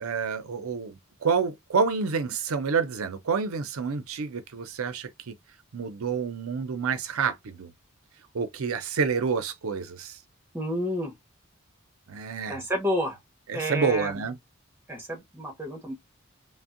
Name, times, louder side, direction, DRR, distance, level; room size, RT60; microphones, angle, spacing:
voice 1, 0.0-5.3 5.7-7.7 8.3-10.2 12.1-12.6 13.5-14.4, right 5 dB, 75° right, 0.5 m, -28 dB
voice 2, 10.5-11.1 12.5-13.2 13.5-14.2 14.9-15.9, equal, 10° right, 0.9 m, -30 dB
3.4 x 2.1 x 2.5 m
head